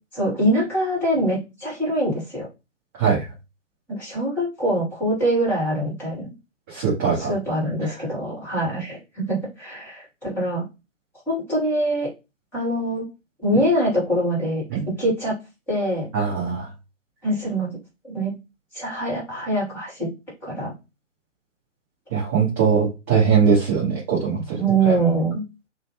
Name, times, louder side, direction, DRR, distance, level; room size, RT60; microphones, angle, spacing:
voice 1, 0.1-2.5 3.9-6.3 7.2-10.7 11.3-12.1 12.5-13.0 13.4-15.3 15.7-16.1 17.2-17.7 18.0-18.3 18.7-20.1 20.4-20.7 24.6-25.4, right 1 dB, 5° left, -6 dB, 1.2 m, -24 dB
voice 2, 6.7-7.3 7.8-7.9 14.7-14.8 16.1-16.7 22.1-25.0, right 6 dB, 10° right, -7 dB, 0.6 m, -21 dB
2.5 x 2.1 x 3.0 m, 0.26 s
figure-of-eight pair, 130°, 37 cm